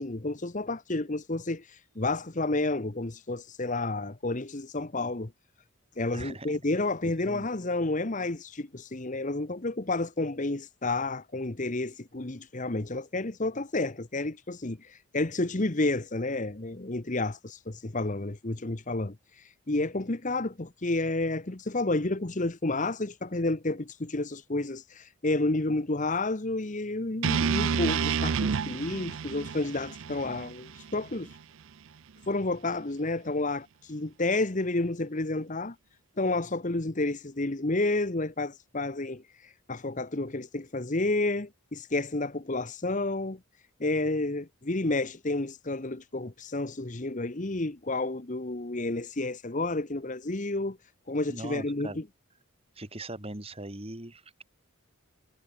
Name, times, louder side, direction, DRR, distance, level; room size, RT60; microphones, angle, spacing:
voice 1, 0.0-5.3 6.0-19.2 19.7-31.3 32.3-35.7 36.2-43.4 43.8-50.8 51.1-52.0, left 2 dB, 35° left, 1.0 m, -30 dB
voice 2, 6.1-6.5 7.2-7.5 51.3-52.0 52.8-54.4, right 1 dB, 25° right, 2.6 m, -40 dB
sound 1, 27.2-31.4, right 6 dB, 60° right, 0.5 m, -29 dB
head